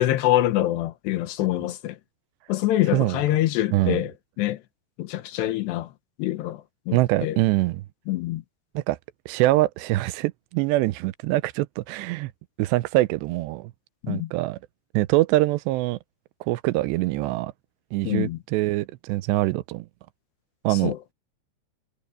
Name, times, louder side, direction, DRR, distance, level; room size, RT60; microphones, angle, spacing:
voice 1, 0.0-2.0 2.5-4.6 5.0-5.9 6.2-7.4 8.1-8.4 14.0-14.3 18.0-18.4 20.7-21.0, left 14 dB, 85° left, 3.2 m, -25 dB
voice 2, 3.7-4.0 6.9-7.8 8.8-9.0 9.3-12.3 12.6-13.7 14.1-14.6 14.9-16.0 16.4-17.5 17.9-19.9 20.6-20.9, right 18 dB, 90° right, 2.9 m, -24 dB
omnidirectional pair, 4.8 m